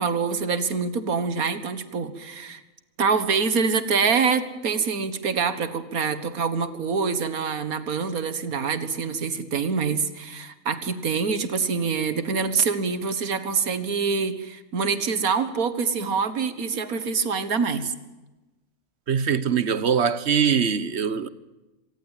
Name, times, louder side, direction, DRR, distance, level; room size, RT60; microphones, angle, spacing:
voice 1, 0.0-2.6 3.0-17.9, right 5 dB, 85° right, 2.0 m, -25 dB
voice 2, 19.1-21.3, right 7 dB, 50° right, 1.3 m, -22 dB
25.5 x 19.0 x 9.1 m
omnidirectional pair, 1.5 m